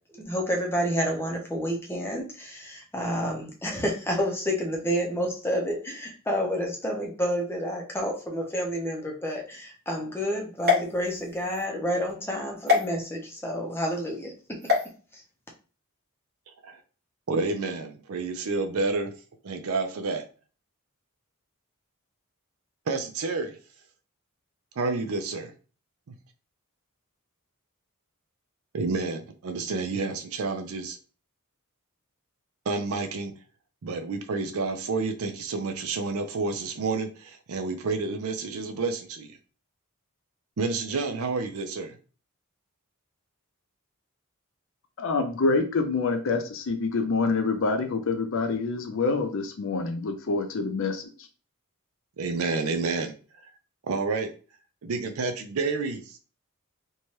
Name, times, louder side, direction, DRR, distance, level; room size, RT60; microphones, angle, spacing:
voice 1, 0.1-14.6 15.1-15.2, equal, 10° left, 0.6 m, -29 dB
sound 1, 10.6-11.6 12.7-12.8 14.6-14.9, left 6 dB, 45° right, 0.9 m, -25 dB
voice 2, 17.3-19.1 19.4-20.2 22.9-23.6 24.8-25.5 26.1-26.2 28.7-31.0 32.7-33.3 33.8-39.4 40.6-42.0 52.2-53.1 53.8-54.3 54.8-56.2, right 3 dB, 70° right, 0.5 m, -29 dB
voice 3, 45.0-51.1, left 3 dB, 60° left, 0.5 m, -26 dB
2.7 x 2.2 x 3.1 m
head